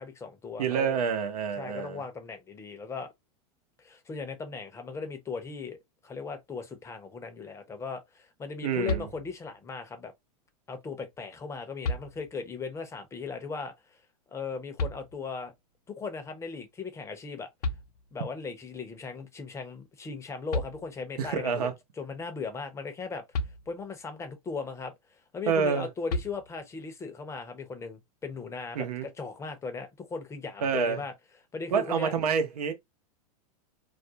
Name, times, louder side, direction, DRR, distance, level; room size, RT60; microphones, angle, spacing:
voice 1, 0.0-1.0 1.6-3.1 3.8-5.8 6.0-10.1 10.7-14.0 14.3-15.5 15.9-17.5 18.1-21.7 22.0-23.2 23.7-24.9 25.3-31.1 31.5-32.1, left 4 dB, 15° left, 0.6 m, -38 dB
voice 2, 0.6-2.0 8.6-9.1 21.2-21.7 25.5-25.9 28.7-29.1 30.6-31.0 31.7-32.7, right 6 dB, 85° right, 0.8 m, -28 dB
sound 1, 8.8-9.6 11.1-11.2 11.8-12.6 14.8-15.5 17.3-17.4 17.6-18.4 20.1-20.2 20.5-21.3 23.3-24.1 26.1-26.9, left 2 dB, 85° left, 0.6 m, -34 dB
2.4 x 2.2 x 2.7 m
hypercardioid pair, 125°, 19 cm